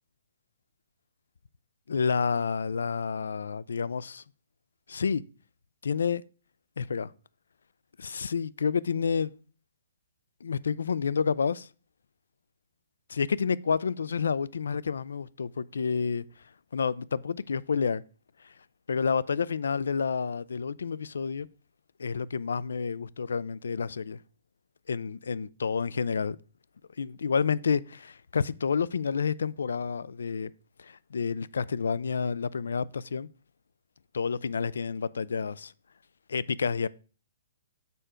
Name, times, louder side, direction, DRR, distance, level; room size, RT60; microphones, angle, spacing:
voice 1, 1.9-4.2 4.9-5.2 5.8-6.2 6.8-7.1 8.0-9.3 10.4-11.7 13.1-16.2 16.7-18.0 18.9-21.5 22.0-24.2 24.9-26.4 27.0-30.5 30.8-33.3 34.1-35.7 36.3-36.9, left 5 dB, 85° left, 0.3 m, -29 dB
6.8 x 4.4 x 5.0 m
hypercardioid pair, 145°, 0 cm